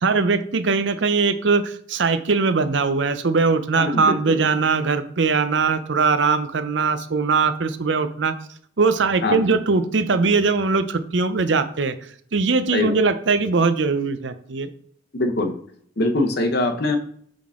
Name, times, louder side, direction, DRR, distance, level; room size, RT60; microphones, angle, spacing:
voice 1, 0.0-8.4 8.8-12.0 12.3-14.7, right 4 dB, 70° right, 11 dB, 0.6 m, -21 dB
voice 2, 3.8-4.4 9.2-9.5 12.7-12.9 15.1-15.5 16.0-17.0, left 2 dB, 55° left, 5 dB, 0.9 m, -23 dB
8.5 x 3.8 x 3.7 m, 0.62 s
head